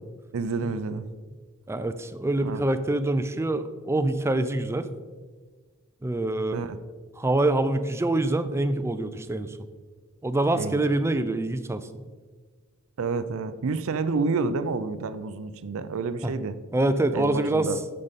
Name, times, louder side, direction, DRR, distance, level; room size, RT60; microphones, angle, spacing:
voice 1, 0.3-1.1 2.4-2.6 6.5-6.8 10.5-10.8 13.0-16.6 17.1-17.8, right 4 dB, 65° right, 12 dB, 0.5 m, -29 dB
voice 2, 1.7-4.9 6.0-6.7 7.2-9.6 10.2-11.9 16.2-16.3 16.7-17.7, right 2 dB, 10° right, 11 dB, 0.4 m, -25 dB
8.8 x 6.5 x 4.1 m, 1.4 s
head